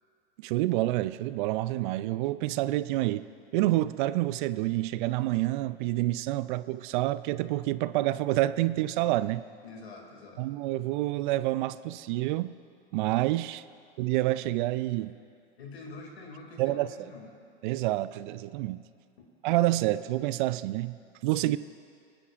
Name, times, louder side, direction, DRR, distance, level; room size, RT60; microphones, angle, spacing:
voice 1, 0.4-3.2 3.5-9.4 10.4-12.5 12.9-13.6 14.0-15.2 16.6-16.9 17.6-18.8 19.4-21.6, right 16 dB, 55° right, 15 dB, 0.4 m, -28 dB
voice 2, 9.6-10.4 15.6-17.3 19.2-19.3 21.5-21.6, left 3 dB, 85° left, 1 dB, 2.5 m, -46 dB
26.5 x 10.0 x 2.5 m, 2.3 s
hypercardioid pair, 115°, 31 cm